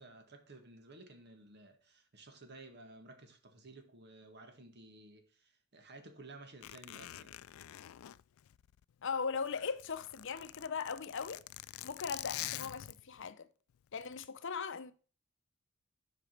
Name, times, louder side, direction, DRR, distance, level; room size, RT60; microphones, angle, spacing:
voice 1, 0.0-7.4, right 2 dB, 55° right, 1.8 m, -55 dB
Zipper (clothing), 6.6-9.0 9.3-13.3 14.0-14.3, left 14 dB, 85° left, 0.3 m, -46 dB
voice 2, 9.0-11.4 11.8-13.5 13.9-14.9, left 5 dB, 60° left, 0.7 m, -39 dB
8.1 x 5.1 x 5.9 m
head